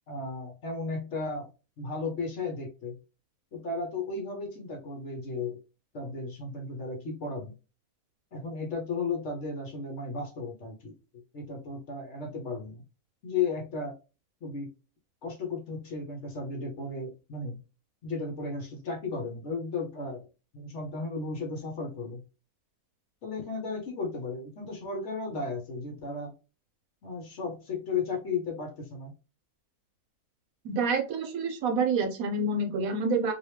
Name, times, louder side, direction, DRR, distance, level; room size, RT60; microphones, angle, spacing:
voice 1, 0.1-1.5 1.8-3.0 3.5-5.6 5.9-7.5 8.3-10.9 11.3-12.8 13.2-13.9 14.4-14.7 15.2-17.6 18.0-20.3 20.5-22.2 23.2-26.3 27.0-29.1, left 4 dB, 55° left, 1 dB, 1.0 m, -34 dB
voice 2, 30.6-33.3, right 3 dB, 70° right, 5 dB, 1.1 m, -27 dB
2.9 x 2.8 x 3.2 m, 0.31 s
omnidirectional pair, 1.6 m